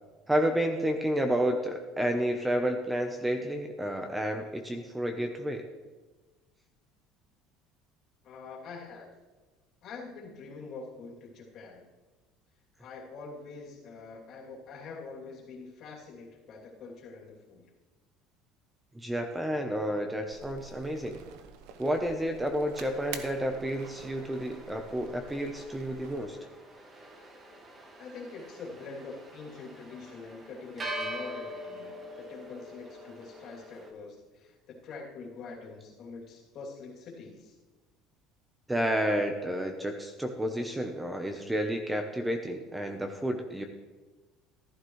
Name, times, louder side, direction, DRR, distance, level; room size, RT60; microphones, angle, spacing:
voice 1, 0.3-5.7 18.9-21.2 21.8-26.4 38.7-43.7, equal, 5° right, 5 dB, 0.8 m, -30 dB
voice 2, 8.2-9.1 9.8-11.8 12.8-17.7 28.0-37.6, left 4 dB, 50° left, -3 dB, 2.8 m, -45 dB
sound 1, 20.3-26.3, right 7 dB, 75° right, 0.9 m, -48 dB
sound 2, 22.8-33.9, equal, 25° right, 1.7 m, -44 dB
14.0 x 12.0 x 3.2 m, 1.2 s
cardioid pair, 140°, 0 cm